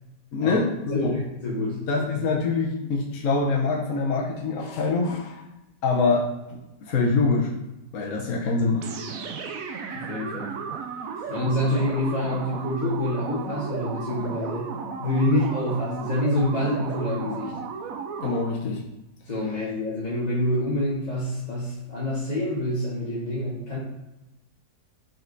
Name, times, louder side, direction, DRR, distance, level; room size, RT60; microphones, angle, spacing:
voice 1, 0.3-1.2 1.7-5.4 5.8-7.5 7.9-8.9 18.2-18.8, left 3 dB, 60° left, -1 dB, 1.1 m, -25 dB
voice 2, 0.9-1.8 9.9-10.6 11.3-17.5 19.2-23.8, left 1 dB, 30° left, -6 dB, 1.1 m, -27 dB
sound 1, 8.8-18.7, right 5 dB, 65° right, 0.9 m, -34 dB
5.7 x 4.4 x 3.9 m, 0.99 s
omnidirectional pair, 1.7 m